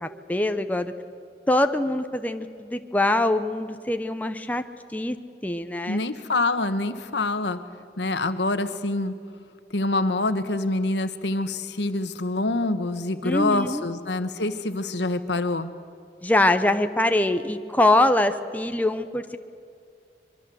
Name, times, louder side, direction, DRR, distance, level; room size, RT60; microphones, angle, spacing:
voice 1, 0.0-0.9 1.5-4.6 4.9-5.2 5.4-6.0 13.2-13.8 16.2-19.4, left 1 dB, 10° left, 8 dB, 0.8 m, -23 dB
voice 2, 5.9-7.6 8.0-9.1 9.7-15.7, left 2 dB, 85° left, 10 dB, 1.4 m, -26 dB
24.0 x 23.5 x 7.8 m, 2.4 s
head